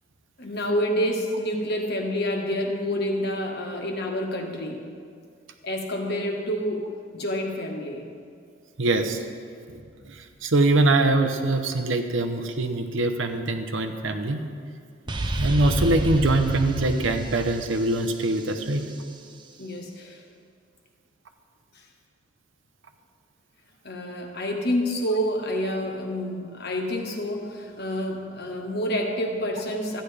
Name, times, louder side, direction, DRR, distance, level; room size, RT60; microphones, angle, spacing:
voice 1, 0.4-4.8 5.6-8.1 15.1-15.2 19.6-20.2 23.8-30.0, equal, 60° left, 1 dB, 1.4 m, -28 dB
voice 2, 8.8-9.2 9.7-9.8 10.4-14.5 15.4-18.8, right 2 dB, 80° right, 6 dB, 0.9 m, -23 dB
sound 1, 15.1-18.8, right 1 dB, 25° right, 0.6 m, -30 dB
14.0 x 10.5 x 3.3 m, 2.2 s
head